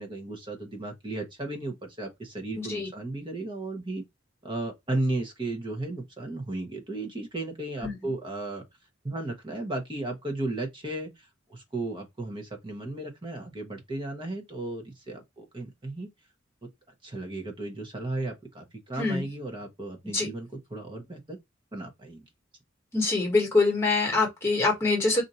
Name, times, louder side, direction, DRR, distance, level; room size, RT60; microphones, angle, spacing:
voice 1, 0.0-4.0 4.4-8.6 9.0-16.1 17.0-21.4 21.7-22.2, right 2 dB, 25° right, 0.9 m, -35 dB
voice 2, 2.5-2.9 7.8-8.1 19.0-19.3 20.1-20.3 22.9-25.2, left 3 dB, 15° left, 1.3 m, -25 dB
2.6 x 2.5 x 4.1 m
head